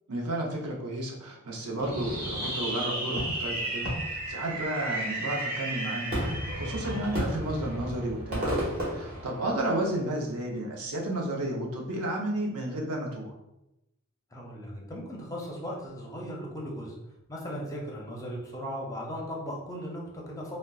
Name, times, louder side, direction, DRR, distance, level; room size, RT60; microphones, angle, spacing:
voice 1, 0.1-13.3, right 1 dB, 80° right, -1 dB, 0.7 m, -32 dB
Fireworks, 1.8-9.9, right 1 dB, 45° right, 1.1 m, -32 dB
voice 2, 14.3-16.9 17.3-20.6, equal, 15° left, -2 dB, 0.5 m, -37 dB
3.8 x 2.1 x 2.3 m, 0.91 s
head